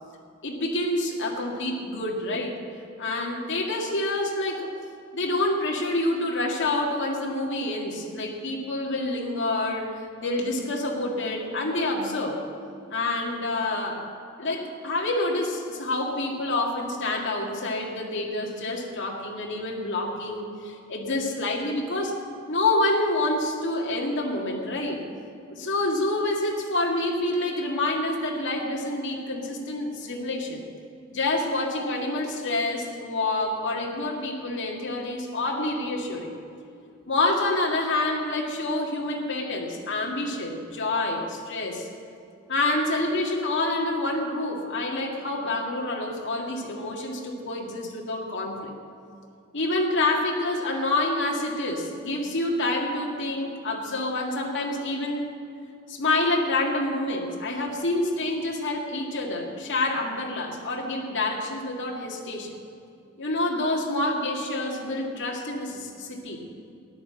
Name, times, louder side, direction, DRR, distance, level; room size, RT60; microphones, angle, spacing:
voice 1, 0.4-2.6 3.0-4.7 5.1-12.4 12.9-14.0 14.4-22.1 22.5-25.0 25.5-30.6 31.1-36.3 37.1-41.9 42.5-48.7 49.5-55.3 55.9-62.5 63.2-66.4, left 2 dB, 60° left, -1 dB, 2.1 m, -27 dB
14.0 x 10.5 x 7.7 m, 2.5 s
head